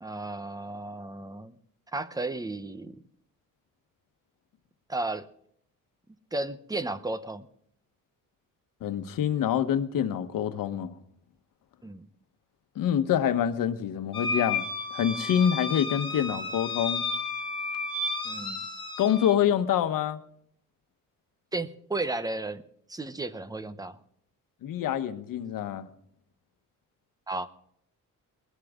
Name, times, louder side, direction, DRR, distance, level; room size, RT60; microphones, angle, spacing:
voice 1, 0.0-1.6 1.9-3.0 4.9-5.3 6.3-7.5 11.8-12.1 18.2-18.7 21.5-22.6 22.9-24.0 27.3-27.5, right 2 dB, 10° right, 0.7 m, -34 dB
voice 2, 8.8-10.9 12.8-14.6 14.9-17.0 19.0-20.2 24.6-25.9, left 9 dB, 85° left, 1.2 m, -26 dB
sound 1, 14.1-19.3, left 3 dB, 15° left, 2.1 m, -32 dB
20.0 x 13.0 x 3.7 m
cardioid pair, 155°, 32 cm